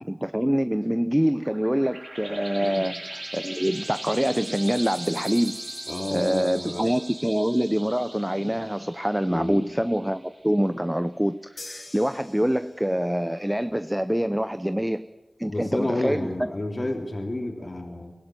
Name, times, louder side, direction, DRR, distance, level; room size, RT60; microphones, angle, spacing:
voice 1, 0.1-3.0 3.3-5.6 6.1-15.1 15.4-16.5, equal, 10° right, 11 dB, 0.8 m, -25 dB
sound 1, 1.2-10.4, right 1 dB, 35° right, 4.2 m, -39 dB
voice 2, 5.9-6.9 9.3-9.7 15.5-18.1, left 1 dB, 45° left, 1 dB, 3.2 m, -30 dB
sound 2, 11.6-13.1, left 2 dB, 70° left, 4.2 m, -43 dB
23.5 x 17.5 x 9.3 m, 1.2 s
wide cardioid pair, 50°, 0 cm